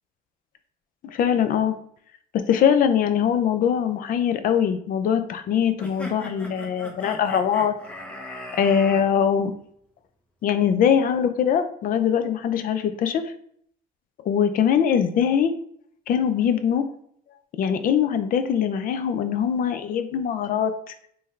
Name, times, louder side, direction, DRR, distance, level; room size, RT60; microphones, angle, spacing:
voice 1, 1.0-1.7 2.3-7.7 8.5-9.5 10.4-13.3 14.3-15.5 16.1-16.8 17.6-20.9, left 8 dB, 55° left, 10 dB, 0.5 m, -22 dB
sound 1, 5.8-9.0, left 1 dB, 5° left, 0.8 m, -38 dB
3.8 x 2.7 x 3.2 m, 0.66 s
cardioid pair, 110°, 17 cm